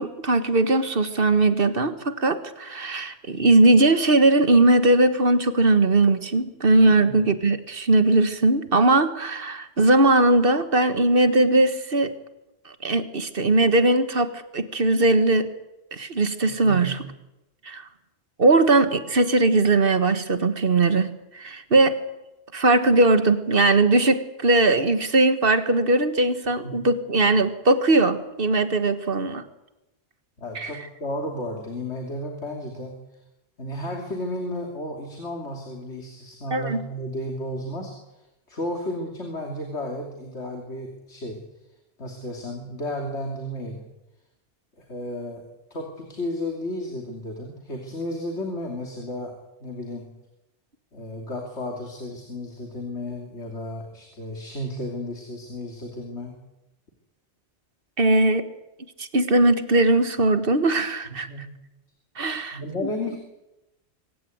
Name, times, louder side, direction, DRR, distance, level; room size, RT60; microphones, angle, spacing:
voice 1, 0.0-12.2 12.6-15.5 15.9-17.0 17.6-17.9 18.4-22.0 22.5-29.4 30.5-30.7 36.5-36.8 58.0-58.5 59.0-61.5 62.2-62.9, right 2 dB, 55° right, 11 dB, 1.6 m, -20 dB
voice 2, 6.8-7.2 16.4-16.9 26.6-26.8 30.4-33.2 33.6-38.2 38.5-41.4 42.0-43.9 44.8-45.4 45.7-49.3 49.6-50.1 50.9-56.3 61.1-61.5 62.2-63.2, left 1 dB, 75° left, 2 dB, 3.2 m, -33 dB
25.0 x 15.5 x 9.3 m, 0.95 s
omnidirectional pair, 1.2 m